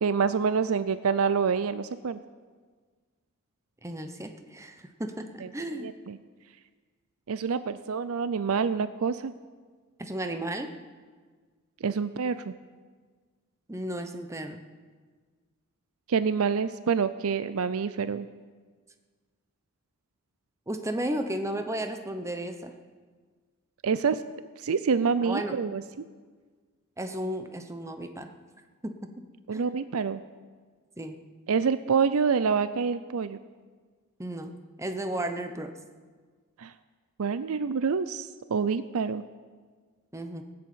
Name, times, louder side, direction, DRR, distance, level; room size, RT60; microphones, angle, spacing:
voice 1, 0.0-2.2 5.4-5.5 5.8-6.2 7.3-9.3 11.8-12.5 16.1-18.3 23.8-24.2 24.6-25.8 29.5-30.2 31.5-33.4 36.6-36.7 37.2-39.2, right 5 dB, 75° right, 13 dB, 0.5 m, -27 dB
voice 2, 3.8-5.9 10.0-10.7 13.7-14.6 20.7-22.7 25.1-25.6 27.0-28.3 28.8-29.2 29.5-29.6 31.0-31.2 34.2-34.5 34.8-35.8 40.1-40.4, right 1 dB, 15° right, 6 dB, 0.9 m, -34 dB
18.5 x 7.8 x 8.7 m, 1.5 s
head